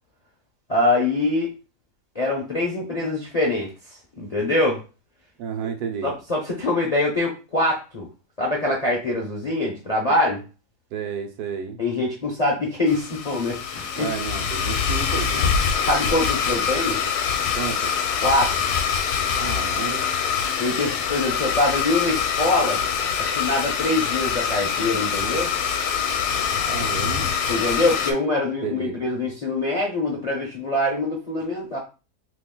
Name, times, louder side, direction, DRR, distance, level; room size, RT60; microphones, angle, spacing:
voice 1, 0.7-1.5 2.1-3.7 4.2-4.8 6.0-8.1 8.4-10.4 11.8-14.1 15.8-17.0 18.2-18.5 20.6-22.8 23.2-25.5 27.5-31.8, left 2 dB, 50° left, -2 dB, 0.4 m, -24 dB
voice 2, 5.4-6.2 10.9-11.8 14.0-15.5 17.6-17.9 19.4-20.1 26.7-27.3 28.6-29.0, right 7 dB, 75° right, 6 dB, 1.1 m, -31 dB
Domestic sounds home sounds, 12.9-28.1, left 7 dB, 75° left, 1.1 m, -24 dB
2.9 x 2.4 x 3.7 m, 0.31 s
omnidirectional pair, 1.7 m